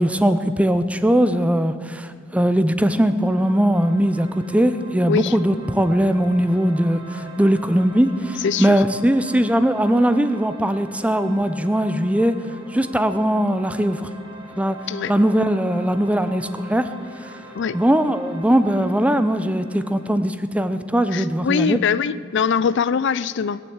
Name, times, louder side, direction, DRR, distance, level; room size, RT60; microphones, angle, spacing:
voice 1, 0.0-12.4 12.7-14.1 14.6-14.8 15.1-16.9 17.7-21.8, equal, 5° right, 11 dB, 0.5 m, -20 dB
sound 1, 3.2-20.2, right 1 dB, 25° right, 2.2 m, -43 dB
voice 2, 8.4-8.8 14.9-15.1 17.5-17.8 21.1-23.6, left 6 dB, 60° left, 16 dB, 0.4 m, -22 dB
19.5 x 7.6 x 8.0 m, 2.5 s
head